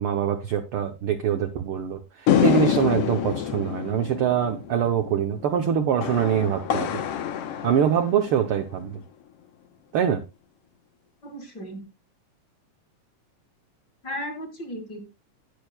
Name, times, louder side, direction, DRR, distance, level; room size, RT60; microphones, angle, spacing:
voice 1, 0.0-7.0 7.6-9.0 9.9-10.2, right 8 dB, 75° right, 7 dB, 1.3 m, -24 dB
sound 1, 2.3-8.8, left 10 dB, 65° left, 1.7 m, -27 dB
voice 2, 11.2-11.9 14.0-15.1, equal, 35° left, 4 dB, 2.8 m, -35 dB
18.5 x 6.6 x 2.2 m, 0.24 s
omnidirectional pair, 3.4 m